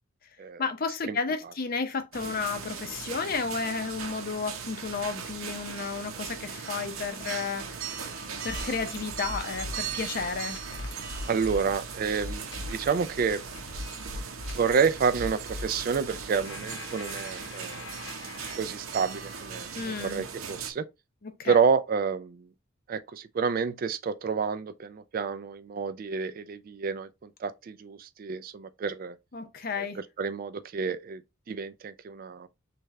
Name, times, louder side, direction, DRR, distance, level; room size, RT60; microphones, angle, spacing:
voice 1, 0.6-8.0 8.4-10.6 19.7-20.2 21.2-21.6 29.3-30.0, left 5 dB, 45° left, 0.6 m, -32 dB
sound 1, 2.1-20.7, right 6 dB, 85° right, 0.7 m, -39 dB
sound 2, 6.5-18.6, left 2 dB, 65° left, 1.0 m, -42 dB
voice 2, 11.3-13.4 14.0-14.3 14.5-17.8 18.6-20.9 21.4-22.5 22.9-29.2 29.8-31.2 31.5-32.5, right 6 dB, 45° right, 0.3 m, -29 dB
3.4 x 3.2 x 3.6 m
head